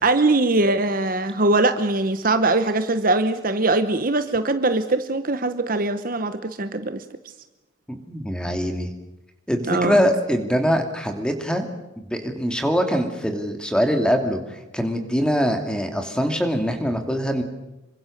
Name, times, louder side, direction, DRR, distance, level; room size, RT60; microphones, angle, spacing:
voice 1, 0.0-7.0 9.7-10.0, right 2 dB, 40° right, 9 dB, 1.0 m, -21 dB
voice 2, 7.9-8.9 9.5-11.7 12.0-17.4, equal, 5° left, 5 dB, 2.6 m, -23 dB
27.0 x 24.0 x 6.6 m, 1.0 s
head